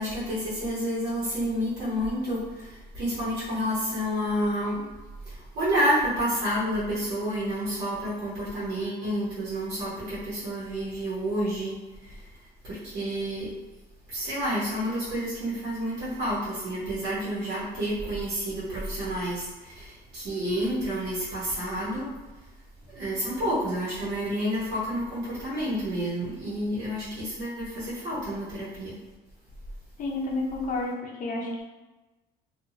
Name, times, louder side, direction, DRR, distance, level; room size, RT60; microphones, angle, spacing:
voice 1, 0.0-4.9 5.2-12.3 12.6-13.5 14.1-22.1 22.9-28.9, equal, 70° right, -9 dB, 1.1 m, -29 dB
voice 2, 30.0-31.6, left 2 dB, 50° left, -1 dB, 0.6 m, -30 dB
2.6 x 2.4 x 2.8 m, 1.2 s
cardioid pair, 120°, 18 cm